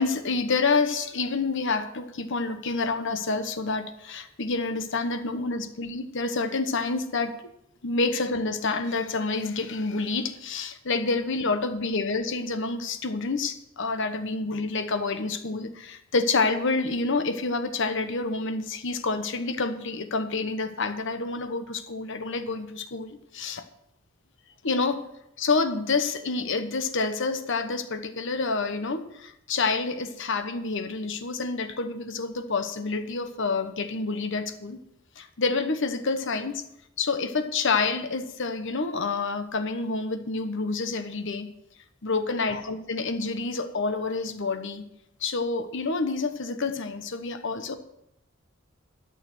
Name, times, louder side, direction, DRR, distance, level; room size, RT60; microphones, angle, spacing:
voice 1, 0.0-7.4 7.8-23.6 24.6-25.1 25.4-34.8 35.2-36.6 37.0-41.5 42.0-44.8 45.2-47.7, left 3 dB, 65° left, 1.1 m, -28 dB
11.5 x 6.6 x 6.3 m
head